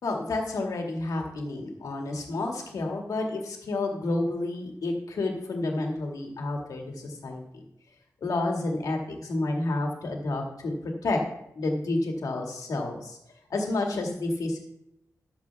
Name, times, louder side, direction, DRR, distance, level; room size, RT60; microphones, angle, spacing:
voice 1, 0.0-7.6 8.2-11.2 11.6-13.2 13.5-14.6, left 2 dB, 80° left, 1 dB, 2.0 m, -30 dB
12.5 x 7.0 x 3.5 m, 0.80 s
wide cardioid pair, 90°, 6 cm